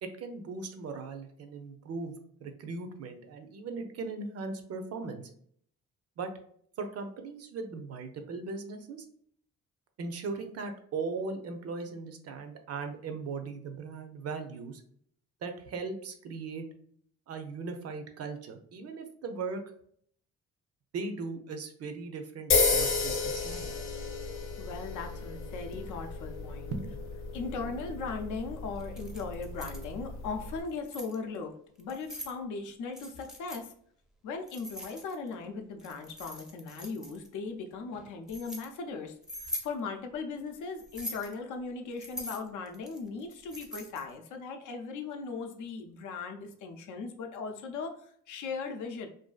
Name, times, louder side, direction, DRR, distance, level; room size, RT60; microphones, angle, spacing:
voice 1, 0.0-2.2 2.4-5.3 6.2-6.3 6.8-9.1 10.0-14.8 15.4-16.7 17.3-19.6 20.9-23.7 26.7-26.9, right 4 dB, 55° right, 6 dB, 0.5 m, -38 dB
sound 1, 22.5-30.6, left 4 dB, 45° left, 0.7 m, -33 dB
voice 2, 24.6-26.7 27.3-33.7 34.2-39.1 39.4-49.1, left 4 dB, 80° left, 5 dB, 0.5 m, -38 dB
Keys jangling, 28.8-29.9 30.6-31.2 31.8-32.4 32.9-33.6 34.5-35.3 35.8-37.3 37.9-38.7 39.2-39.7 40.8-41.3 42.0-44.1, left 1 dB, ahead, 0.5 m, -42 dB
2.6 x 2.4 x 2.3 m, 0.63 s
cardioid pair, 90°, 30 cm